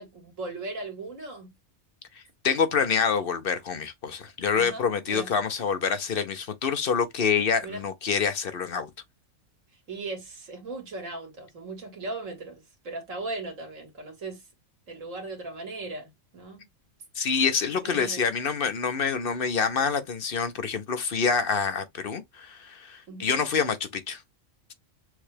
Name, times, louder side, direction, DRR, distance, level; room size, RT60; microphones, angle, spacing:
voice 1, 0.0-1.5 4.5-5.3 7.6-7.9 9.9-14.4 14.9-16.7 17.8-18.2 23.1-23.4, right 2 dB, 65° right, 2.0 m, -38 dB
voice 2, 2.1-8.9 17.1-24.2, left 6 dB, 50° left, 0.9 m, -27 dB
6.4 x 2.4 x 3.3 m
omnidirectional pair, 1.4 m